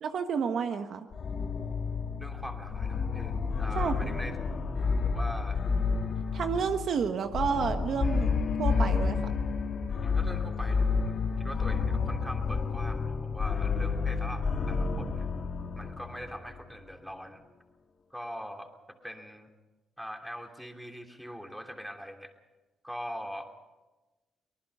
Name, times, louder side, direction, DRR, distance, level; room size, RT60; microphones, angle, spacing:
voice 1, 0.0-1.1 3.7-4.1 6.3-8.3 8.6-9.2, right 6 dB, 60° right, 7 dB, 1.3 m, -30 dB
sound 1, 1.1-16.8, left 5 dB, 45° left, 2.0 m, -30 dB
voice 2, 2.2-4.4 5.0-5.6 10.0-15.3 15.7-17.4 18.1-19.5 20.0-22.3 22.8-23.5, equal, ahead, 3 dB, 2.9 m, -42 dB
24.5 x 19.5 x 5.6 m, 1.1 s
cardioid pair, 90°, 0 cm